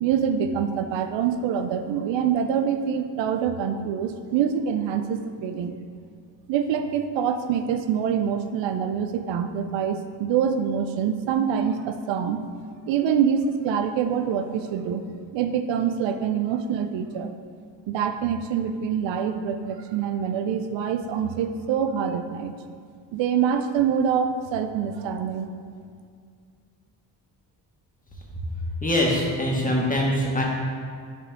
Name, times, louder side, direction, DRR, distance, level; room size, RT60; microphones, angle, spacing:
voice 1, 0.0-5.7 6.5-12.4 12.9-15.0 15.3-17.3 17.9-22.5 23.1-25.5, right 7 dB, 75° right, 7 dB, 0.5 m, -25 dB
voice 2, 28.8-30.4, left 1 dB, 20° left, -3 dB, 1.4 m, -23 dB
5.5 x 4.9 x 3.5 m, 2.2 s
supercardioid pair, 65°, 45 cm